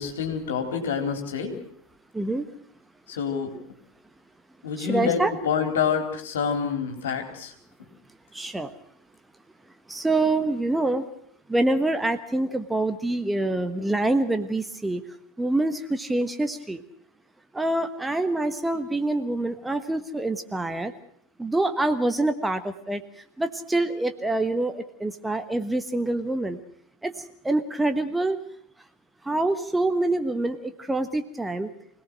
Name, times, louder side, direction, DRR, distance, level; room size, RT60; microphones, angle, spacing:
voice 1, 0.0-1.5 3.1-3.6 4.6-7.5, left 6 dB, 65° left, 5 dB, 4.0 m, -27 dB
voice 2, 2.1-2.4 4.8-5.3 8.3-8.7 9.9-11.0 11.5-15.0 15.4-16.8 17.5-20.9 21.4-23.0 23.4-26.6 27.0-27.1 27.4-28.4 29.2-31.7, right 2 dB, 5° right, 8 dB, 1.3 m, -26 dB
25.0 x 18.0 x 6.1 m, 0.65 s
figure-of-eight pair, 85°, 0 cm